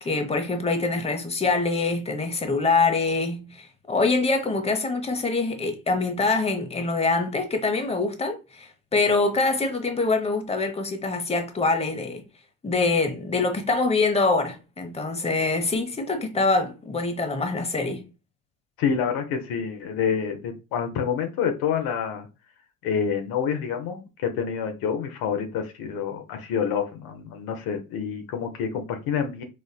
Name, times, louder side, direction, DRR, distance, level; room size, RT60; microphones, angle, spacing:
voice 1, 0.0-12.2 12.6-18.0, left 3 dB, 15° left, 0.9 m, -24 dB
voice 2, 18.8-22.3 22.8-29.4, left 7 dB, 70° left, 0.8 m, -27 dB
4.2 x 2.4 x 2.3 m
hypercardioid pair, 60°, 37 cm